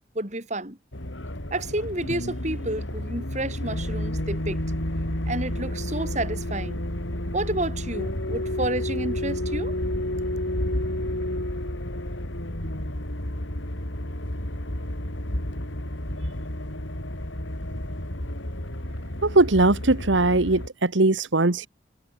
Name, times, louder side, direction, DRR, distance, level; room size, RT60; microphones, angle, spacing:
voice 1, 0.2-0.8 1.5-4.6 5.3-6.8 7.3-9.7, right 1 dB, 40° right, 5.6 m, -30 dB
sound 1, 0.9-20.7, left 1 dB, 85° left, 4.6 m, -31 dB
voice 2, 19.2-21.7, right 2 dB, 80° right, 1.4 m, -20 dB
head